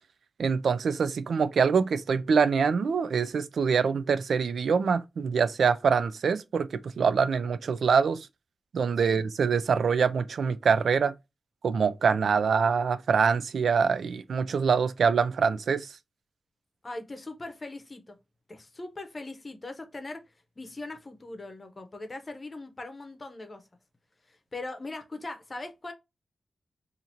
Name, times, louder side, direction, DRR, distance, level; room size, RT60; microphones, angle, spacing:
voice 1, 0.4-8.3 8.7-11.1 11.6-15.9, right 6 dB, 85° right, 0.3 m, -25 dB
voice 2, 16.8-18.2 18.5-20.2 20.6-23.7 24.3-25.9, left 2 dB, 30° left, 0.7 m, -40 dB
2.8 x 2.5 x 4.3 m
wide cardioid pair, 150°, 0 cm